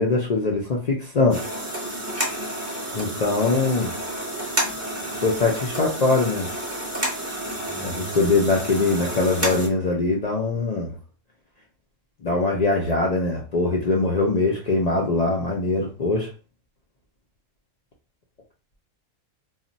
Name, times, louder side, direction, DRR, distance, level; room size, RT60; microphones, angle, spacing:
voice 1, 0.0-1.4 2.9-3.9 5.2-6.5 7.8-10.9 12.2-16.3, left 3 dB, 80° left, 0.3 m, -22 dB
sound 1, 1.3-9.7, right 1 dB, 15° right, 0.7 m, -30 dB
2.4 x 2.1 x 3.9 m
omnidirectional pair, 1.4 m